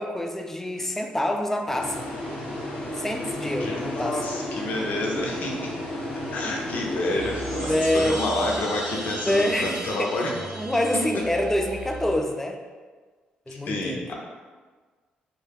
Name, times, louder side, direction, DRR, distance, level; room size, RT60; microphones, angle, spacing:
voice 1, 0.0-2.1 2.9-4.2 7.6-8.2 9.2-10.1 10.6-12.6 13.5-14.0, left 1 dB, 10° left, 3 dB, 0.3 m, -26 dB
sound 1, 1.7-8.4, left 1 dB, 85° left, 0.9 m, -33 dB
voice 2, 3.6-5.7 6.3-10.3 13.7-14.1, left 2 dB, 65° left, -1 dB, 0.6 m, -29 dB
sound 2, 7.0-12.0, right 1 dB, 30° right, 0.7 m, -38 dB
sound 3, 7.2-12.2, right 3 dB, 65° right, 0.4 m, -40 dB
2.2 x 2.2 x 3.2 m, 1.4 s
supercardioid pair, 65°, 3 cm